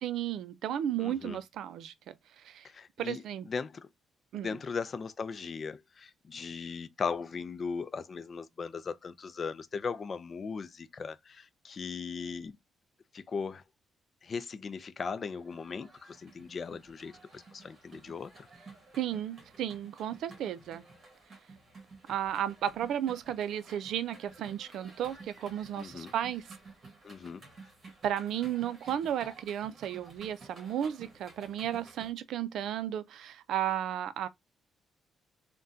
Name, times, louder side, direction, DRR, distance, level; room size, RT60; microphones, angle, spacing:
voice 1, 0.0-2.7 3.0-3.5 4.3-4.6 18.9-20.8 22.1-26.5 28.0-34.3, right 10 dB, 75° right, 0.4 m, -34 dB
voice 2, 1.0-1.4 2.6-3.2 3.5-3.9 4.3-12.6 13.1-13.6 14.2-18.5 25.8-26.1 27.0-27.4, left 5 dB, 40° left, 0.4 m, -38 dB
sound 1, 15.4-32.1, right 3 dB, 45° right, 1.3 m, -53 dB
3.6 x 2.2 x 2.6 m
cardioid pair, 90°, 0 cm